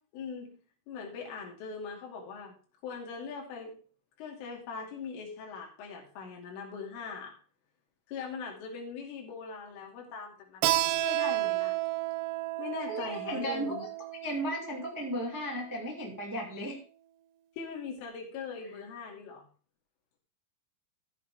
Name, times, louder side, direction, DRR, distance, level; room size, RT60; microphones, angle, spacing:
voice 1, 0.1-0.6 0.9-2.6 2.8-3.8 4.2-7.3 8.1-10.7 11.0-11.8 12.6-13.8 17.6-19.5, left 5 dB, 80° left, 0 dB, 5.1 m, -41 dB
Keyboard (musical), 10.6-15.9, right 17 dB, 90° right, 3.4 m, -32 dB
voice 2, 12.9-13.9 14.2-16.8, equal, 15° right, -2 dB, 0.6 m, -35 dB
14.0 x 8.5 x 3.5 m, 0.39 s
omnidirectional pair, 5.6 m